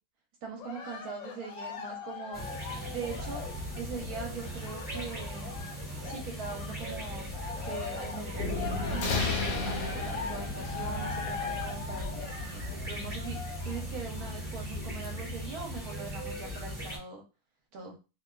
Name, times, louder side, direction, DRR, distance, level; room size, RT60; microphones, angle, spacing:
voice 1, 0.4-2.4 2.9-3.4 3.8-5.6 6.0-17.2 17.7-18.0, right 5 dB, 70° right, 1 dB, 1.0 m, -41 dB
Cheering, 0.6-6.9 7.3-13.9 14.5-14.6, left 5 dB, 65° left, 0.8 m, -41 dB
sound 1, 2.3-17.0, equal, ahead, 0.8 m, -39 dB
sound 2, 3.1-15.0, left 3 dB, 85° left, 1.2 m, -38 dB
2.6 x 2.2 x 2.2 m, 0.30 s
omnidirectional pair, 1.8 m